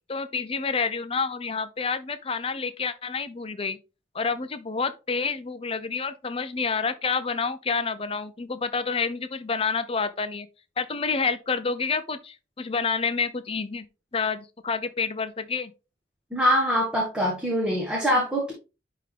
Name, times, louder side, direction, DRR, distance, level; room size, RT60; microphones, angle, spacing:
voice 1, 0.1-3.8 4.1-10.5 10.8-13.8 14.1-15.7, left 5 dB, 30° left, 0.6 m, -28 dB
voice 2, 16.3-18.5, equal, 5° right, 1.5 m, -23 dB
10.5 x 3.7 x 3.3 m
head